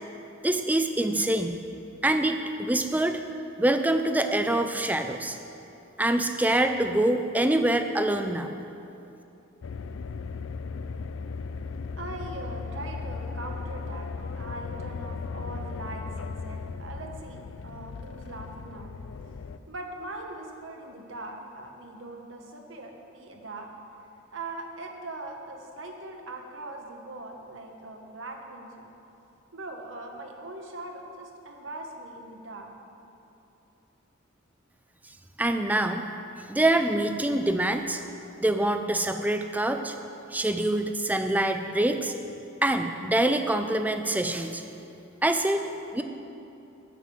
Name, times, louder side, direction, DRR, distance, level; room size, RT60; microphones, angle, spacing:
voice 1, 0.4-1.6 2.0-3.2 3.6-5.4 6.0-8.5 35.4-36.0 36.5-38.0 38.4-39.9 40.3-42.1 42.6-44.6 45.2-46.0, right 1 dB, 10° right, 7 dB, 0.5 m, -25 dB
sound 1, 9.6-19.6, left 4 dB, 75° left, 0.4 m, -37 dB
voice 2, 12.0-14.1 14.4-18.9 19.7-23.7 24.3-28.9 29.5-32.7, right 2 dB, 70° right, 2 dB, 1.3 m, -41 dB
9.7 x 7.3 x 7.6 m, 2.8 s
head